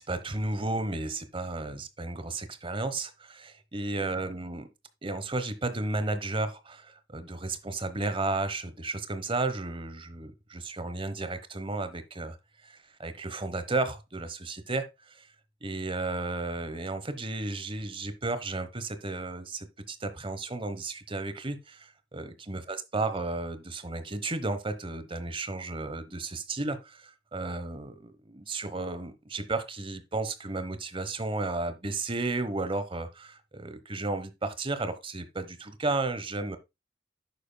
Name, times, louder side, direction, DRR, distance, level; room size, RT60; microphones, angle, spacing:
voice 1, 0.0-4.7 5.0-12.4 12.6-15.3 15.6-36.6, right 2 dB, 30° right, 1.1 m, -33 dB
11.0 x 8.6 x 2.3 m
head